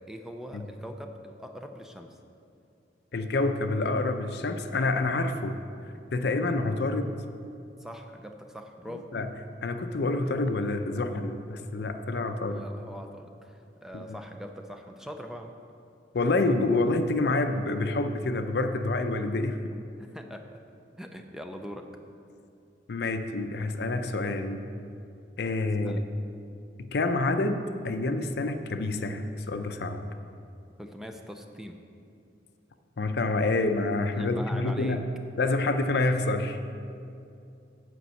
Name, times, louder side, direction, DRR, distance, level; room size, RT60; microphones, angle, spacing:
voice 1, 0.0-2.2 7.8-9.1 12.5-15.5 20.0-20.6 21.0-21.9 25.8-26.0 30.8-31.8 34.1-35.0, equal, 5° right, 5 dB, 0.5 m, -42 dB
voice 2, 3.1-5.6 6.1-7.2 9.1-9.3 9.6-12.7 13.9-14.0 16.1-19.6 22.9-24.6 25.4-26.0 26.8-30.1 33.0-35.0 35.4-36.6, left 2 dB, 65° left, 8 dB, 0.5 m, -27 dB
8.3 x 5.3 x 7.5 m, 2.5 s
head